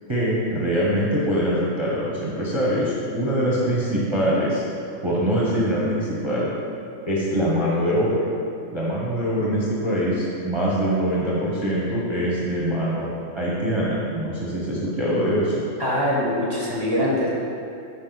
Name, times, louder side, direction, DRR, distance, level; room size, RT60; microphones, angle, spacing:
voice 1, 0.1-4.7 5.0-6.5 7.1-8.3 8.7-13.1 13.3-15.6, equal, 20° right, -6 dB, 1.0 m, -23 dB
voice 2, 15.8-17.3, left 1 dB, 20° left, -5 dB, 1.2 m, -23 dB
9.3 x 5.3 x 4.0 m, 2.6 s
omnidirectional pair, 1.5 m